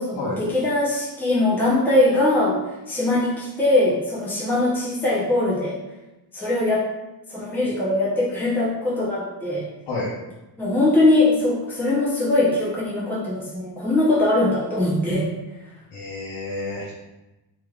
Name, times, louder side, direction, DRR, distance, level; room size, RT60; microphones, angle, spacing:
voice 1, 0.0-2.6 2.9-5.8 6.3-6.9 7.3-9.6 10.6-15.3, left 2 dB, 5° left, -8 dB, 0.7 m, -21 dB
voice 2, 15.9-16.9, left 2 dB, 65° left, -7 dB, 1.0 m, -29 dB
3.4 x 3.0 x 2.3 m, 1.0 s
cardioid pair, 145°, 42 cm